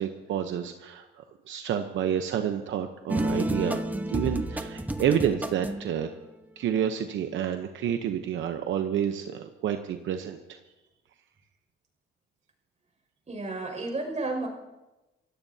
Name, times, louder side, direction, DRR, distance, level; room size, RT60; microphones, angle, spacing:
voice 1, 0.0-3.8 4.1-6.1 6.6-10.6, right 9 dB, 75° right, 6 dB, 0.9 m, -29 dB
sound 1, 3.1-5.9, right 1 dB, 10° right, 1.1 m, -30 dB
voice 2, 13.3-14.5, right 2 dB, 35° right, 2 dB, 5.9 m, -32 dB
26.0 x 16.5 x 2.8 m, 1.1 s
cardioid pair, 90°, 20 cm